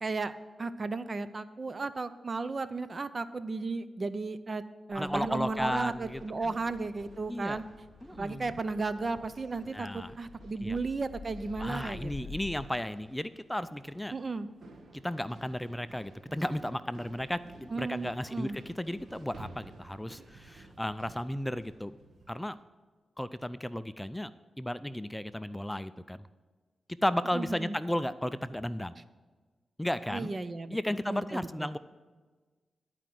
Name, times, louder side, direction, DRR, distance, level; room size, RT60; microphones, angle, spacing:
voice 1, 0.0-0.3 0.6-4.6 4.9-7.6 8.1-12.4 14.1-14.5 17.7-18.6 27.3-27.7 30.1-30.8 31.0-31.8, right 3 dB, 45° right, 13 dB, 0.5 m, -34 dB
voice 2, 4.9-6.5 7.3-7.6 8.0-8.5 9.7-10.1 10.6-10.8 11.6-14.1 15.0-22.0 22.3-22.6 23.2-24.3 24.6-26.2 27.0-29.0 29.8-30.3 30.7-31.8, left 1 dB, 10° left, 14 dB, 0.4 m, -34 dB
sound 1, 5.9-12.7, left 4 dB, 60° left, 0.5 m, -50 dB
sound 2, 6.0-22.5, right 2 dB, 70° right, 1.3 m, -54 dB
11.0 x 5.0 x 7.5 m, 1.3 s
cardioid pair, 65°, 0 cm